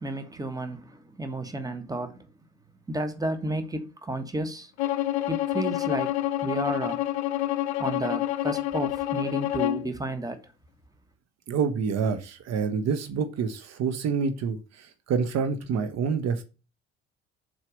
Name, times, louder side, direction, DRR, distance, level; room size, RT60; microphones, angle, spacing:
voice 1, 0.0-2.3 2.9-4.7 5.3-6.1 6.4-7.0 7.8-10.5, right 1 dB, 10° right, 1.5 m, -32 dB
Bowed string instrument, 4.8-9.9, left 14 dB, 70° left, 0.6 m, -28 dB
voice 2, 11.5-16.4, right 6 dB, 50° right, 1.2 m, -27 dB
7.4 x 4.7 x 6.6 m
figure-of-eight pair, 50°, 34 cm